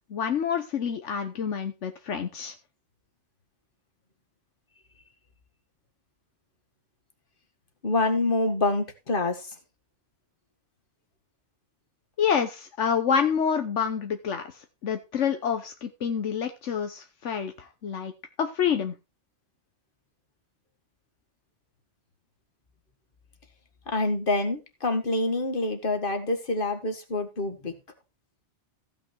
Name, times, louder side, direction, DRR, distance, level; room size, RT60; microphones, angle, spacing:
voice 1, 0.1-2.5 12.2-14.4 14.8-18.1 18.4-18.9, left 7 dB, 80° left, 7 dB, 1.3 m, -27 dB
voice 2, 7.8-9.4 23.9-27.7, left 2 dB, 45° left, 6 dB, 2.0 m, -26 dB
15.0 x 6.0 x 4.5 m, 0.27 s
omnidirectional pair, 1.2 m